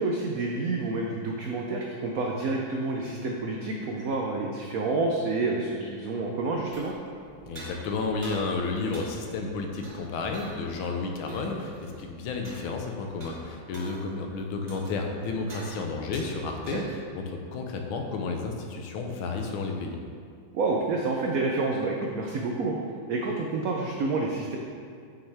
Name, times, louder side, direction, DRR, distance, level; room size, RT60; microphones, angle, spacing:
voice 1, 0.0-6.9 16.6-16.9 20.5-22.8 23.1-24.6, right 3 dB, 85° right, 0 dB, 0.7 m, -29 dB
sound 1, 6.5-17.2, right 1 dB, 35° right, 1.3 m, -47 dB
voice 2, 7.5-20.0, left 3 dB, 85° left, 3 dB, 1.5 m, -32 dB
7.8 x 5.9 x 3.4 m, 2.2 s
omnidirectional pair, 2.2 m